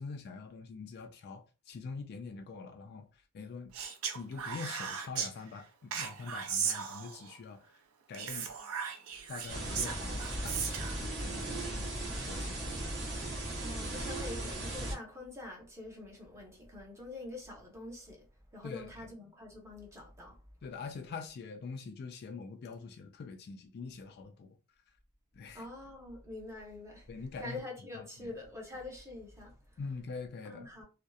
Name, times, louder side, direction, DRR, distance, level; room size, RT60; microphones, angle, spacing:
voice 1, 0.0-3.7 4.1-7.7 8.1-8.5 9.3-12.0 12.3-12.9 18.6-19.1 20.6-24.6 25.3-25.7 27.1-27.6 27.9-28.3 29.8-30.7, left 4 dB, 50° left, 0.3 m, -44 dB
Speech, 3.7-5.3 5.9-7.3 8.1-11.0, right 7 dB, 70° right, 0.4 m, -37 dB
sound 1, 9.5-14.9, right 1 dB, 50° right, 0.9 m, -37 dB
voice 2, 13.6-18.3 18.5-20.4 25.5-30.0 30.4-30.8, left 2 dB, 15° right, 0.8 m, -45 dB
2.6 x 2.0 x 2.3 m
head